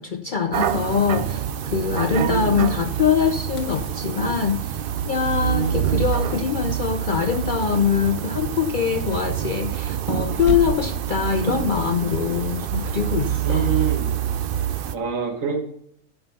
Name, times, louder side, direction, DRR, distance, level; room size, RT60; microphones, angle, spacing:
voice 1, 0.0-13.7, left 7 dB, 70° left, 8 dB, 0.4 m, -23 dB
sound 1, 0.5-15.0, right 10 dB, 85° right, 0.4 m, -26 dB
voice 2, 2.1-2.7 5.4-6.0 13.4-14.1 14.9-15.6, right 5 dB, 60° right, 3 dB, 1.8 m, -26 dB
sound 2, 3.6-4.9 6.1-7.3 9.1-10.1 10.4-11.1 13.5-13.9, left 1 dB, 85° left, 1.6 m, -35 dB
11.0 x 5.5 x 5.5 m, 0.71 s
omnidirectional pair, 1.5 m